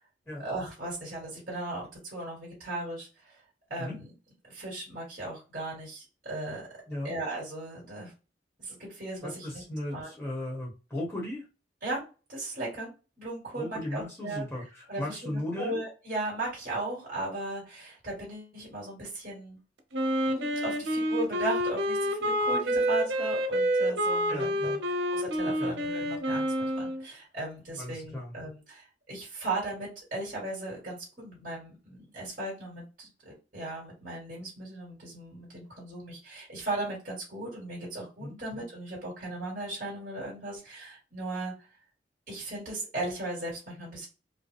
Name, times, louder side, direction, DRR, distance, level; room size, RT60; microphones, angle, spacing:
voice 1, 0.4-3.4 3.7-4.1 4.5-6.6 7.0-8.1 8.6-9.6 9.9-10.1 11.8-12.0 12.3-12.9 13.2-14.4 14.9-19.6 20.2-41.5 42.3-44.1, right 2 dB, 50° right, -5 dB, 2.4 m, -37 dB
voice 2, 9.2-11.5 13.6-15.8 24.3-24.8 25.6-25.7 27.7-28.3 38.2-38.4, left 1 dB, 5° left, -4 dB, 1.3 m, -36 dB
Wind instrument woodwind instrument, 19.9-27.0, equal, 85° right, 0.8 m, -28 dB
4.9 x 2.2 x 3.5 m, 0.32 s
head